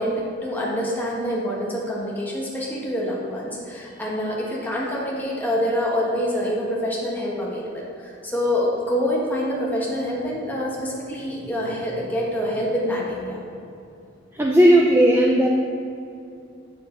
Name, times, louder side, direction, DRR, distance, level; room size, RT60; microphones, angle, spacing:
voice 1, 0.0-13.5, equal, 10° left, -5 dB, 1.4 m, -26 dB
voice 2, 14.3-15.5, right 1 dB, 10° right, -1 dB, 0.4 m, -15 dB
8.0 x 7.0 x 3.8 m, 2.6 s
head